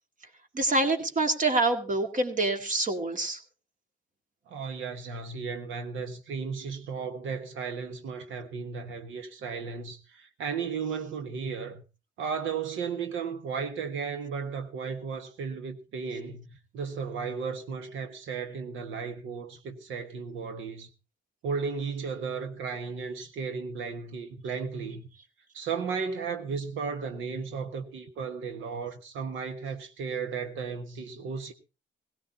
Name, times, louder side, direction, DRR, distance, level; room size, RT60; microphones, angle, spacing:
voice 1, 0.5-3.4, right 2 dB, 40° right, 2.1 m, -26 dB
voice 2, 4.5-11.8 12.2-20.9 21.4-25.0 25.5-31.5, right 5 dB, 80° right, 1.5 m, -35 dB
17.0 x 17.0 x 2.8 m
cardioid pair, 90°, 20 cm